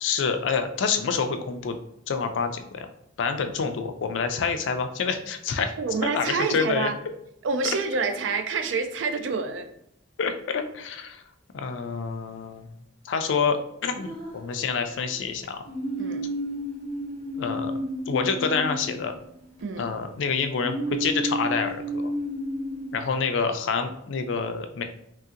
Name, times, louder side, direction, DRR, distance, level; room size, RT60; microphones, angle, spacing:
voice 1, 0.0-1.8 2.1-2.9 3.2-5.8 6.0-6.9 7.6-7.8 10.2-11.2 11.5-12.7 13.0-13.6 13.8-15.6 17.4-17.8 18.1-19.1 19.8-22.1 22.9-24.8, left 5 dB, 80° left, 7 dB, 0.4 m, -27 dB
voice 2, 5.8-7.0 7.4-9.7 16.0-16.2 19.6-19.9, right 4 dB, 85° right, 7 dB, 0.4 m, -27 dB
sound 1, 14.0-15.0 15.6-19.6 20.5-22.9, equal, 30° right, 0.8 m, -32 dB
3.1 x 2.7 x 2.4 m, 0.76 s
head